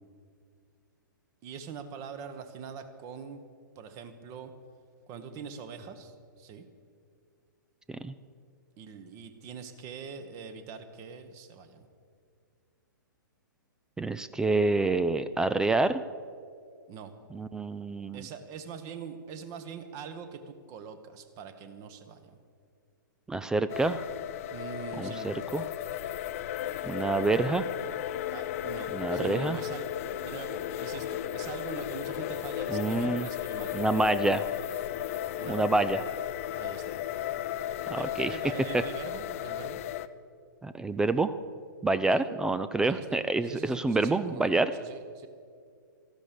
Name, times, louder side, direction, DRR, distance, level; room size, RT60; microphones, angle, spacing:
voice 1, 1.4-3.4 3.7-4.5 5.1-6.6 8.8-11.9 16.9-17.1 18.1-22.4 24.5-25.4 28.3-29.9 30.2-33.7 35.4-35.6 36.5-37.0 38.0-39.8 42.1-42.2 42.8-43.0 43.4-44.5 44.8-45.3, right 6 dB, 30° right, 10 dB, 1.3 m, -43 dB
voice 2, 14.0-16.0 17.3-18.2 23.3-24.0 25.0-25.6 26.8-27.7 28.9-29.6 32.7-33.3 33.7-34.5 35.5-36.0 37.9-38.4 38.7-38.8 40.6-41.3 41.8-44.7, right 3 dB, 5° right, 13 dB, 0.3 m, -27 dB
sound 1, 23.7-40.1, left 11 dB, 40° left, 0.6 m, -35 dB
14.0 x 12.0 x 6.9 m, 2.2 s
figure-of-eight pair, 120°, 11 cm